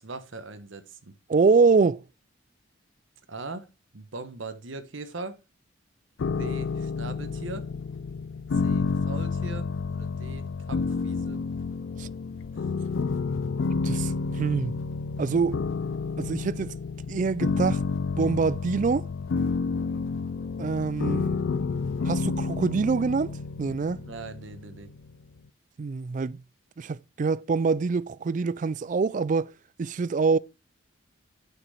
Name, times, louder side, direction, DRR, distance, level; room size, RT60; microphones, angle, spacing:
voice 1, 0.0-1.1 3.3-3.7 3.9-5.4 6.4-7.7 8.6-11.4 23.9-24.9, right 3 dB, 70° right, 1.1 m, -40 dB
voice 2, 1.3-2.0 12.0-12.1 13.8-14.8 15.2-15.6 16.2-16.8 17.1-17.8 18.2-19.1 20.6-21.4 22.1-24.0 25.8-26.4 26.8-29.5 29.8-30.4, right 4 dB, 40° right, 0.3 m, -25 dB
Music Creepy piano loop, 6.2-25.2, left 4 dB, 70° left, 0.4 m, -30 dB
6.8 x 5.9 x 5.5 m
head